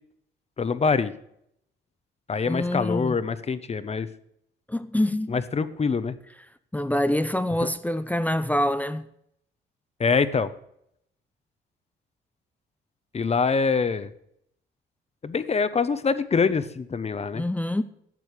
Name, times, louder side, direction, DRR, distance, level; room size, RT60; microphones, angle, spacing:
voice 1, 0.6-1.1 2.3-4.1 5.3-6.1 7.6-7.7 10.0-10.5 13.1-14.1 15.2-17.4, left 5 dB, 30° left, 1.0 m, -24 dB
voice 2, 2.5-3.2 4.7-5.4 6.7-9.1 17.3-17.8, left 1 dB, 10° left, 0.7 m, -25 dB
12.5 x 7.8 x 6.7 m
cardioid pair, 90°, 20 cm